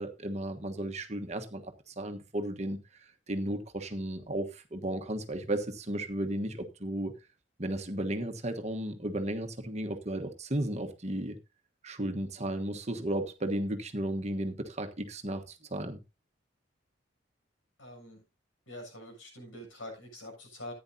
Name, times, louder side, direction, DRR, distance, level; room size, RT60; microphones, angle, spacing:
voice 1, 0.0-2.8 3.3-7.1 7.6-11.4 11.8-16.0, right 1 dB, 35° right, 1.3 m, -34 dB
voice 2, 17.8-18.2 18.7-20.7, left 1 dB, 85° left, 7.3 m, -45 dB
15.0 x 9.8 x 2.8 m
head